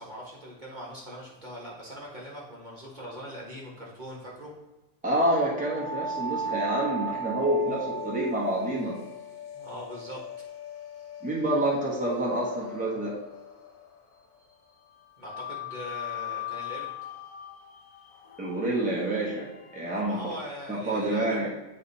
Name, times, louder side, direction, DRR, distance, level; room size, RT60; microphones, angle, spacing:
voice 1, 0.0-4.5 7.6-7.8 9.5-10.3 15.2-16.9 20.0-21.5, equal, 35° right, -4 dB, 1.6 m, -41 dB
voice 2, 5.0-9.0 11.2-13.1 18.4-19.5 19.7-20.3 20.7-21.5, right 1 dB, 5° right, -5 dB, 1.3 m, -27 dB
sound 1, 5.6-14.4 15.2-20.0, left 1 dB, 70° left, 1.3 m, -38 dB
9.5 x 3.4 x 4.1 m, 1.1 s
omnidirectional pair, 1.5 m